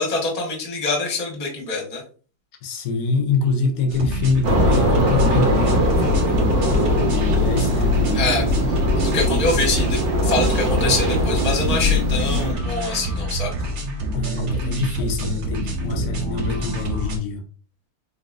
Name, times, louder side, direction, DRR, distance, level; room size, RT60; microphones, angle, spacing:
voice 1, 0.0-2.0 8.1-8.4 9.0-13.6, left 3 dB, 25° left, 0.9 m, -25 dB
voice 2, 2.6-8.9 14.1-17.4, left 3 dB, 65° left, 0.9 m, -25 dB
sound 1, 3.9-17.2, right 1 dB, 85° right, 0.6 m, -27 dB
sound 2, 4.4-12.5, equal, 65° right, 1.6 m, -20 dB
3.9 x 3.8 x 2.4 m
omnidirectional pair, 2.3 m